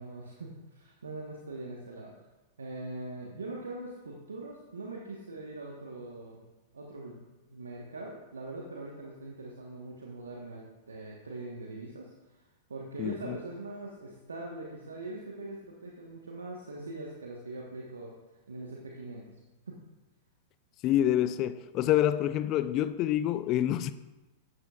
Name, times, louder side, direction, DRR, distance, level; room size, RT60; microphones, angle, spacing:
voice 1, 0.0-2.2 2.6-6.4 6.7-7.2 7.5-12.3 12.7-18.1 18.5-19.4 19.7-19.8, right 2 dB, 80° right, 1.2 m, -42 dB
voice 2, 13.0-13.4 20.8-23.9, left 12 dB, 40° left, 0.4 m, -27 dB
11.5 x 9.5 x 2.4 m
hypercardioid pair, 100°, 0 cm